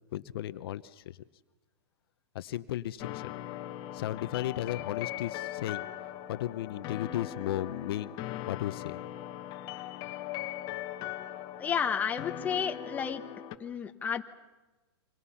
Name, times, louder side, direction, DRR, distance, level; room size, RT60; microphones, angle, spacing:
voice 1, 0.1-0.8 2.3-3.3 3.9-5.8 6.3-8.1 8.5-9.0, left 13 dB, 60° left, 13 dB, 0.8 m, -34 dB
sound 1, 3.0-13.6, left 12 dB, 30° left, 1.2 m, -40 dB
voice 2, 11.6-13.2 13.6-14.2, left 7 dB, 10° left, 5 dB, 1.0 m, -31 dB
29.5 x 24.5 x 5.7 m, 1.1 s
hypercardioid pair, 155°, 14 cm